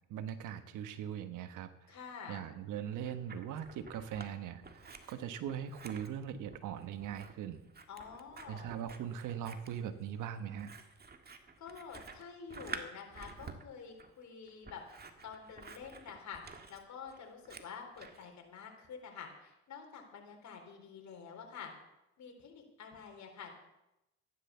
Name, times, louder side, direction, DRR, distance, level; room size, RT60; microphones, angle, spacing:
voice 1, 0.1-1.9 2.3-7.7 8.5-10.7, right 9 dB, 90° right, 10 dB, 1.3 m, -40 dB
voice 2, 1.9-2.5 7.9-8.7 11.6-14.8 15.2-16.4 16.7-21.7 22.2-23.6, left 6 dB, 65° left, 2 dB, 4.0 m, -48 dB
Scissors, 2.8-4.3 4.6-18.3, right 4 dB, 30° right, 1.7 m, -50 dB
14.5 x 11.0 x 7.0 m, 0.92 s
cardioid pair, 90°, 30 cm